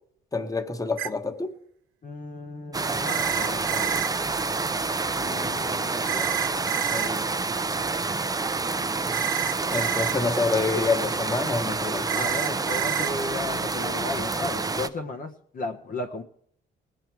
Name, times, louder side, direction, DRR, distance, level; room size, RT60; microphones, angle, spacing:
voice 1, 0.3-1.5 9.7-12.2, left 3 dB, 15° left, 1.3 m, -27 dB
sound 1, 1.0-1.1 3.1-4.1 6.1-7.1 9.1-10.1 12.1-13.1, right 12 dB, 90° right, 0.6 m, -29 dB
voice 2, 2.0-4.1 5.2-7.3 12.1-16.2, left 3 dB, 45° left, 1.1 m, -35 dB
sound 2, 2.7-14.9, right 3 dB, 20° right, 0.7 m, -28 dB
19.5 x 7.8 x 4.6 m
cardioid pair, 90°, 20 cm